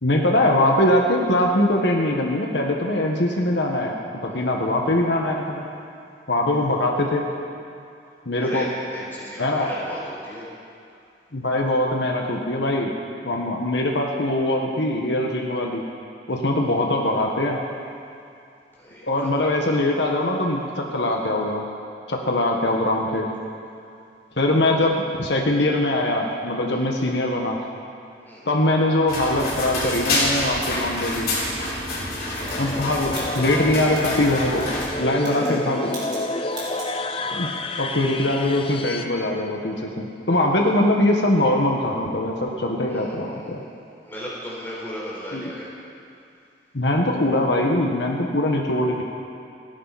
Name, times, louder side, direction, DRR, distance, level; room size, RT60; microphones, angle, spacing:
voice 1, 0.0-4.0 4.2-5.6 6.3-7.3 8.3-8.7 9.4-9.7 11.3-12.9 13.2-15.8 16.3-17.6 19.0-21.6 22.1-23.3 24.4-27.6 28.5-31.3 32.6-34.7 35.0-35.9 37.3-37.5 37.8-43.6 45.3-45.5 46.7-49.0, left 1 dB, 75° left, 0 dB, 1.6 m, -22 dB
voice 2, 4.3-5.1 6.5-6.6 8.4-10.5 16.5-17.1 18.8-19.3 19.6-19.8 26.7-26.8 28.2-28.5 31.6-32.7 35.1-35.9 37.2-37.5 40.6-40.7 42.9-43.7 44.0-45.7, equal, 10° left, -7 dB, 4.5 m, -37 dB
sound 1, 29.1-34.9, left 1 dB, 55° left, 3.8 m, -27 dB
sound 2, 32.4-39.0, left 2 dB, 30° left, 0.7 m, -30 dB
sound 3, 32.4-34.2 34.6-34.9 35.2-35.6 35.9-36.2 36.5-36.9, right 2 dB, 25° right, 4.4 m, -39 dB
29.5 x 11.0 x 4.3 m, 2.6 s
head